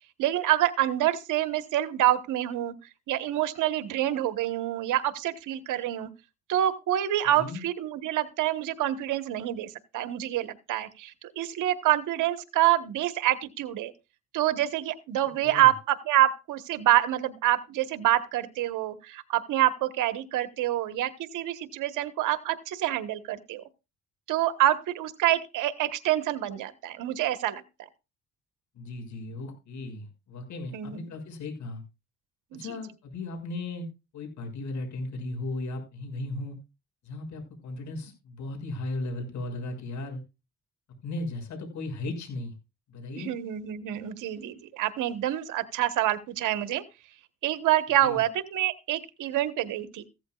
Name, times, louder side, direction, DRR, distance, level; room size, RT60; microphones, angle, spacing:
voice 1, 0.2-2.7 3.1-6.1 6.5-13.9 14.3-23.6 24.3-27.6 30.7-31.1 32.5-32.7 43.2-46.8 47.4-50.0, right 13 dB, 90° right, 11 dB, 1.3 m, -27 dB
voice 2, 28.7-31.8 32.5-33.9 34.1-36.5 37.0-40.2 41.0-42.5 42.9-43.3 48.0-48.2, left 2 dB, 70° left, 3 dB, 6.5 m, -36 dB
15.5 x 13.5 x 2.4 m, 0.28 s
cardioid pair, 90°, 30 cm